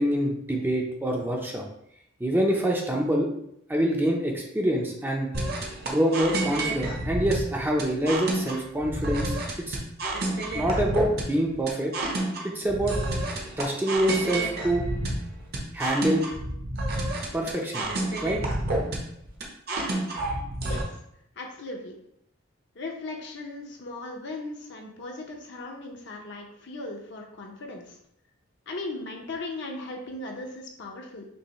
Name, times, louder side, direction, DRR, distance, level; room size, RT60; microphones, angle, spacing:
voice 1, 0.0-1.6 2.2-3.3 3.7-5.3 5.8-9.4 9.7-9.8 10.5-11.9 12.4-13.0 13.6-14.8 15.7-16.2 17.3-17.9 18.2-18.4, right 1 dB, 10° right, 0 dB, 0.4 m, -26 dB
sound 1, 5.3-20.8, right 2 dB, 50° right, 0.7 m, -29 dB
voice 2, 21.4-22.0 22.8-28.0 28.7-31.2, left 2 dB, 60° left, 1 dB, 0.7 m, -37 dB
5.3 x 2.1 x 3.0 m, 0.74 s
head